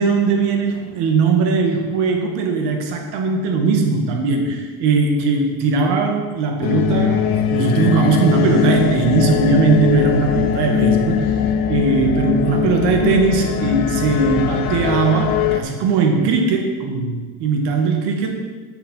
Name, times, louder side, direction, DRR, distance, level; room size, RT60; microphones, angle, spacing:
voice 1, 0.0-18.3, right 4 dB, 70° right, 3 dB, 2.0 m, -19 dB
sound 1, 6.6-15.6, left 9 dB, 55° left, 0.9 m, -20 dB
8.7 x 7.0 x 5.8 m, 1.4 s
supercardioid pair, 100°, 43 cm